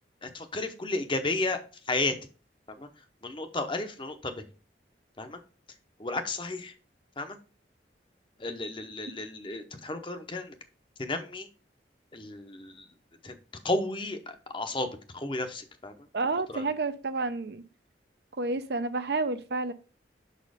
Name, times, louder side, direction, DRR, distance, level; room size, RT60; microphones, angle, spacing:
voice 1, 0.2-2.2 2.7-4.4 5.2-5.4 6.0-6.7 7.2-7.4 8.4-10.6 11.0-11.5 12.1-12.9 13.2-13.3 13.6-16.1 16.5-16.6, left 2 dB, 30° left, 8 dB, 0.7 m, -33 dB
voice 2, 16.1-17.6 18.4-19.7, right 3 dB, 65° right, 11 dB, 0.6 m, -30 dB
6.2 x 4.2 x 4.9 m, 0.36 s
head